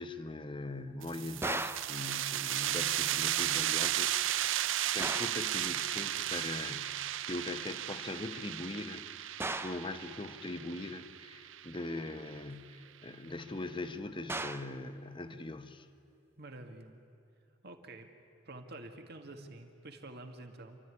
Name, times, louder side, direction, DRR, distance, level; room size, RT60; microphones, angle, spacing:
voice 1, 0.0-15.9, left 2 dB, 25° left, 9 dB, 1.0 m, -41 dB
sound 1, 1.0-12.3, right 12 dB, 85° right, 0.6 m, -34 dB
sound 2, 1.4-2.0 5.0-5.5 9.4-9.9 14.3-14.8, right 2 dB, 15° right, 0.6 m, -36 dB
voice 2, 16.4-17.0 17.6-18.1 18.5-20.8, right 2 dB, 60° right, 5 dB, 1.9 m, -48 dB
29.0 x 13.0 x 9.9 m, 2.7 s
head